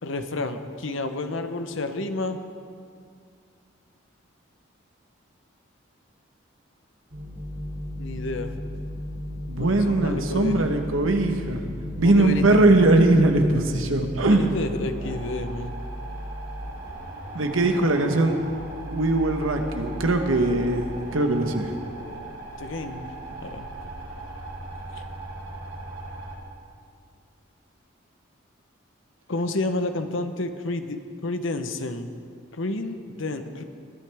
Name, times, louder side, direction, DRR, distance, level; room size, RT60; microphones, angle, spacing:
voice 1, 0.0-2.4 8.0-8.5 9.6-10.7 12.0-12.6 14.2-15.8 21.7-22.3 22.6-23.1 23.4-23.7 24.9-25.0 29.3-32.1 32.5-33.6, left 2 dB, 75° left, 8 dB, 0.9 m, -30 dB
sound 1, 7.1-26.4, equal, 60° right, 3.1 m, -36 dB
voice 2, 9.5-11.6 12.0-14.4 17.3-18.4 18.9-20.9 21.1-21.8, right 2 dB, 85° right, 5 dB, 1.2 m, -20 dB
21.0 x 12.0 x 3.5 m, 2.3 s
head